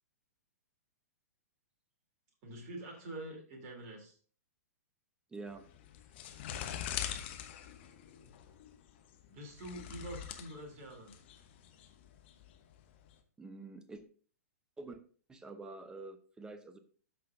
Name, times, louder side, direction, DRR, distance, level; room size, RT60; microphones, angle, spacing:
voice 1, 2.4-4.2 6.4-6.9 9.3-11.1, right 1 dB, 35° right, 2 dB, 3.0 m, -46 dB
voice 2, 5.3-5.7 13.4-14.0 14.8-15.0 15.3-16.8, right 3 dB, 10° right, 10 dB, 0.8 m, -47 dB
sound 1, 5.5-13.1, left 10 dB, 45° left, 1.0 m, -44 dB
13.0 x 5.7 x 2.6 m, 0.42 s
figure-of-eight pair, 110°, 8 cm